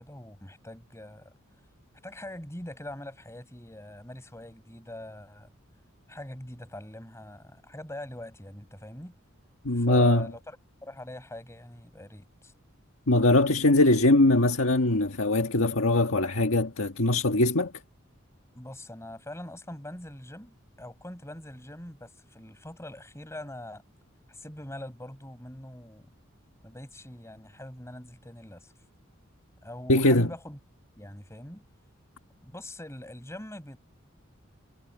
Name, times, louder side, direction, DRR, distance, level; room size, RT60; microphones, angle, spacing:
voice 1, 0.0-1.3 2.0-5.5 6.1-9.1 9.7-10.6 10.8-12.5 18.5-23.8 24.3-26.1 26.6-28.7 29.6-30.6 31.0-31.6 32.4-33.8, left 1 dB, 15° left, 7.6 m, -43 dB
voice 2, 9.6-10.3 13.1-17.7 29.9-30.3, left 2 dB, 80° left, 1.7 m, -22 dB
head